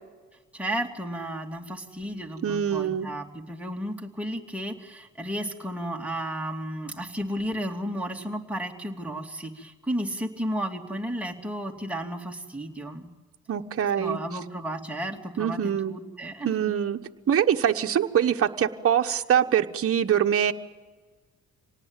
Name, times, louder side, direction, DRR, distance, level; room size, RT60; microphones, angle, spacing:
voice 1, 0.5-13.1 14.0-16.5, right 1 dB, 5° right, 0 dB, 2.8 m, -33 dB
voice 2, 2.4-3.1 13.5-14.2 15.4-15.9 16.4-17.0 17.3-20.5, right 9 dB, 50° right, 5 dB, 1.2 m, -24 dB
26.0 x 18.5 x 9.0 m, 1.4 s
cardioid pair, 90°, 30 cm